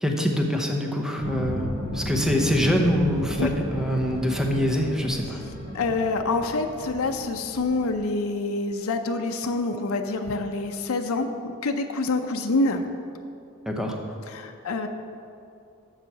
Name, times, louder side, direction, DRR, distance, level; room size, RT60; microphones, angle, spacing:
voice 1, 0.0-5.4 13.7-14.2, equal, 5° right, 1 dB, 0.8 m, -25 dB
sound 1, 1.2-7.9, equal, 50° right, 2.0 m, -34 dB
voice 2, 5.7-12.8 14.3-14.9, left 3 dB, 75° left, 5 dB, 0.6 m, -26 dB
7.4 x 6.2 x 6.8 m, 2.5 s
head